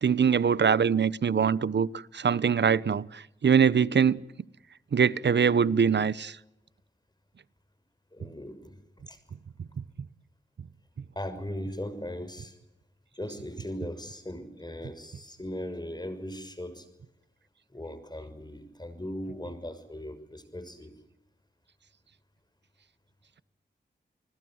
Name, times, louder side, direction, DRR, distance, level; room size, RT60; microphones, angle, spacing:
voice 1, 0.0-4.2 4.9-6.4 9.6-9.7, right 7 dB, 65° right, 1.0 m, -23 dB
voice 2, 8.1-8.7 9.1-9.2 11.2-12.6 13.1-16.9 17.7-20.9, left 1 dB, 20° left, 6.2 m, -38 dB
29.5 x 20.5 x 8.0 m
cardioid pair, 40°, 19 cm